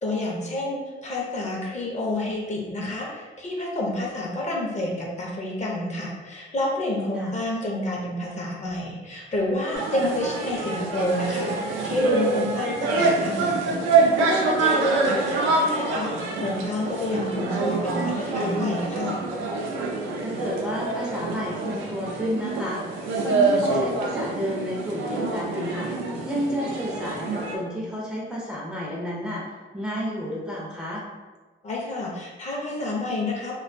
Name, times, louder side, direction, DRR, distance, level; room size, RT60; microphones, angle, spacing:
voice 1, 0.0-19.2 31.6-33.6, left 1 dB, 35° left, -2 dB, 0.6 m, -29 dB
sound 1, 9.7-27.6, right 3 dB, 90° right, 0.5 m, -26 dB
voice 2, 14.9-15.4 20.2-22.8 23.2-25.9 26.2-31.1, equal, 5° right, -5 dB, 0.5 m, -31 dB
2.4 x 2.3 x 2.5 m, 1.3 s
cardioid pair, 90°, 20 cm